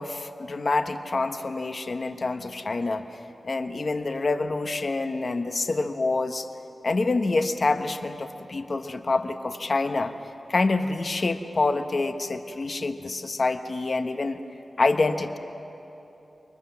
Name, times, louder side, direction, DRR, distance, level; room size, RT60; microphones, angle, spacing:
voice 1, 0.0-6.5 6.8-10.1 10.5-14.4 14.8-15.4, left 3 dB, 45° left, 7 dB, 1.2 m, -27 dB
28.5 x 24.0 x 7.2 m, 2.9 s
wide cardioid pair, 125°, 0 cm